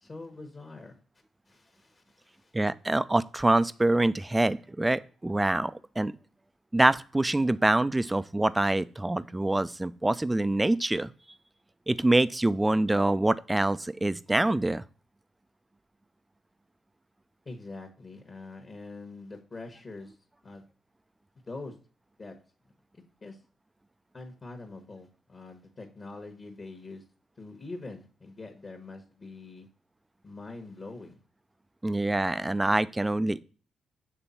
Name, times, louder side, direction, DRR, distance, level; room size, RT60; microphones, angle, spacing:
voice 1, 0.0-1.0 1.5-2.5 17.4-20.1 20.4-20.6 21.5-21.7 22.2-22.3 22.9-23.4 24.1-27.0 27.4-29.7 30.2-31.2, left 3 dB, 40° left, 4 dB, 1.2 m, -44 dB
voice 2, 2.5-6.1 6.7-11.1 11.9-14.8 31.8-33.4, right 2 dB, 15° right, 15 dB, 0.4 m, -25 dB
7.0 x 3.4 x 4.1 m, 0.40 s
cardioid pair, 75°, 0 cm